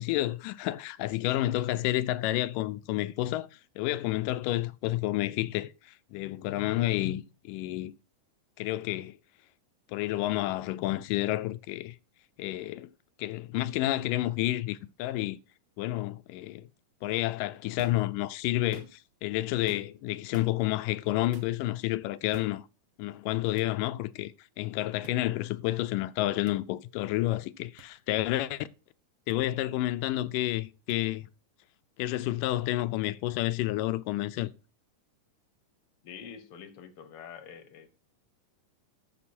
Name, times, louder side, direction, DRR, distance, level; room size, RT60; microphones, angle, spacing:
voice 1, 0.0-3.5 3.8-7.9 8.6-9.2 9.9-12.0 12.4-12.9 13.2-15.4 15.8-16.7 17.0-22.7 23.0-28.7 29.3-31.3 32.0-34.5, left 16 dB, 85° left, 2.2 m, -30 dB
sound 1, 17.8-18.1 18.6-19.1 19.7-20.0 20.3-20.5 21.3-21.6 22.3-22.6 23.6-23.7 25.0-25.2 26.4-26.6 27.8-27.9 29.3-29.4 30.9-31.0, right 9 dB, 65° right, 1.4 m, -49 dB
voice 2, 36.0-38.0, left 7 dB, 60° left, 1.6 m, -46 dB
13.0 x 6.2 x 4.2 m
omnidirectional pair, 3.8 m